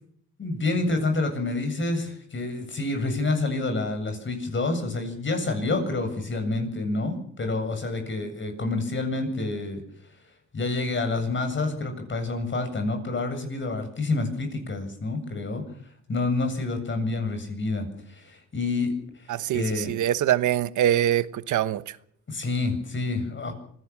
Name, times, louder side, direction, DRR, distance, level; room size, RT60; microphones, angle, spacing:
voice 1, 0.4-9.8 10.5-15.6 16.1-18.9 19.2-19.9 22.3-23.5, left 3 dB, 40° left, 7.9 m, -28 dB
voice 2, 19.3-22.0, right 12 dB, 75° right, 1.2 m, -24 dB
25.5 x 17.0 x 7.3 m
cardioid pair, 90°, 30 cm